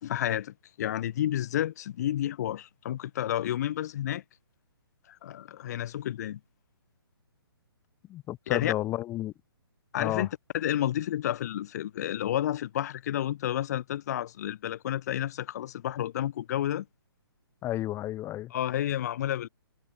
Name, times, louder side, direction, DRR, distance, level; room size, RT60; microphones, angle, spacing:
voice 1, 0.0-4.2 5.1-6.4 8.5-8.7 9.9-10.3 10.5-16.9 18.5-19.5, left 11 dB, 40° left, 3.7 m, -30 dB
voice 2, 8.1-9.3 10.0-10.3 17.6-18.5, left 14 dB, 20° left, 5.2 m, -32 dB
figure-of-eight pair, 130°, 13 cm